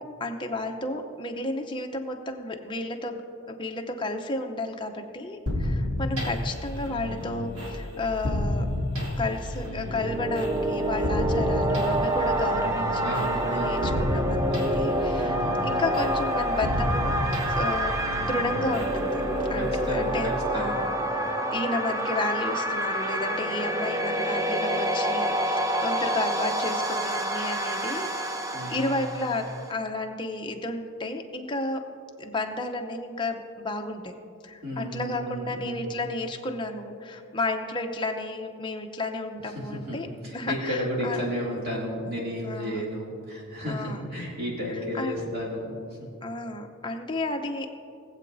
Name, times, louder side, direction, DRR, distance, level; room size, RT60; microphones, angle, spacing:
voice 1, 0.0-3.2 3.5-8.7 9.2-15.4 15.6-17.2 17.5-19.2 19.5-20.9 21.5-28.4 28.7-31.9 32.2-34.1 34.4-40.1 40.3-41.2 42.4-42.9 43.7-44.1 44.7-45.2 46.2-47.7, left 2 dB, 20° left, 3 dB, 0.7 m, -32 dB
sound 1, 5.5-21.1, left 1 dB, 70° right, 2.1 m, -32 dB
sound 2, 9.8-29.7, right 1 dB, 15° right, 0.4 m, -28 dB
voice 2, 11.1-12.0 13.0-13.9 15.2-15.6 19.5-20.8 28.5-29.2 34.6-35.9 39.4-46.1, equal, 45° right, -5 dB, 2.7 m, -33 dB
20.0 x 7.8 x 2.6 m, 2.5 s
head